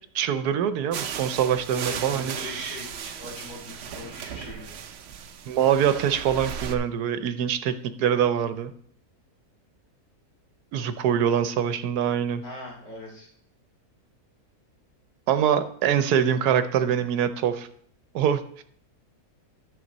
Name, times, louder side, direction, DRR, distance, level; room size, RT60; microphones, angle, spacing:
voice 1, 0.1-2.8 5.5-8.7 10.7-12.4 15.3-17.7 18.1-18.6, right 9 dB, 80° right, 11 dB, 1.2 m, -24 dB
sound 1, 0.9-6.7, right 8 dB, 60° right, 0.7 m, -36 dB
voice 2, 1.7-4.7 12.4-13.3, left 2 dB, 70° left, -2 dB, 3.1 m, -41 dB
10.5 x 6.6 x 4.0 m, 0.62 s
omnidirectional pair, 1.7 m